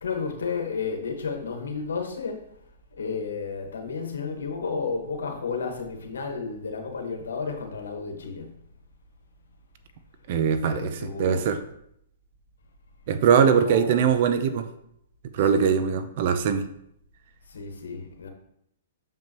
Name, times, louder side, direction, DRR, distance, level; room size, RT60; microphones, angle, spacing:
voice 1, 0.0-2.4 3.0-8.5 10.7-11.5 13.3-14.1 15.5-15.8 17.5-18.3, left 5 dB, 80° left, 1.4 m, -32 dB
voice 2, 10.3-11.6 13.1-14.6 15.3-16.7, right 7 dB, 55° right, 0.6 m, -22 dB
7.1 x 5.4 x 3.0 m
hypercardioid pair, 135°, 0 cm